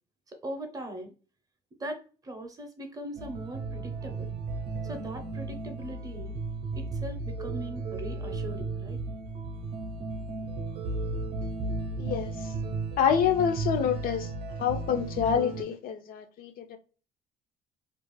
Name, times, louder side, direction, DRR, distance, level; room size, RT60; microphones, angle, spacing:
voice 1, 0.4-1.1 1.8-4.3 4.8-6.4 6.7-9.0, right 1 dB, 20° right, 0.6 m, -40 dB
sound 1, 3.2-15.6, right 3 dB, 70° right, 0.6 m, -34 dB
voice 2, 12.0-12.3 13.0-14.3 14.6-16.8, left 8 dB, 60° left, 0.4 m, -27 dB
2.3 x 2.1 x 3.0 m
cardioid pair, 110°, 17 cm